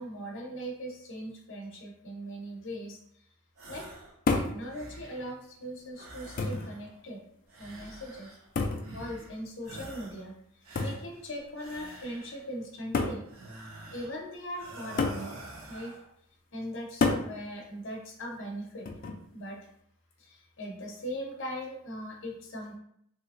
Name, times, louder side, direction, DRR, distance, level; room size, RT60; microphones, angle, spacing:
voice 1, 0.0-3.0 3.7-3.9 4.3-7.2 7.6-8.3 8.9-10.3 10.8-13.2 13.9-15.3 15.7-16.0 16.5-18.9 19.3-19.6 20.2-22.8, equal, 55° left, 0 dB, 0.7 m, -39 dB
sound 1, 3.6-4.2 4.5-5.4 5.9-7.0 7.5-8.5 8.8-9.4 9.6-10.3 10.6-12.5 13.3-14.2 14.5-16.1, right 2 dB, 70° right, 0.8 m, -47 dB
sound 2, 4.3-4.6 5.6-5.7 6.4-6.7 8.6-8.9 10.8-11.0 12.1-12.2 12.9-13.2 15.0-15.3 17.0-17.3 18.9-19.2, left 3 dB, 40° left, 0.3 m, -28 dB
3.3 x 2.9 x 2.4 m, 0.71 s
head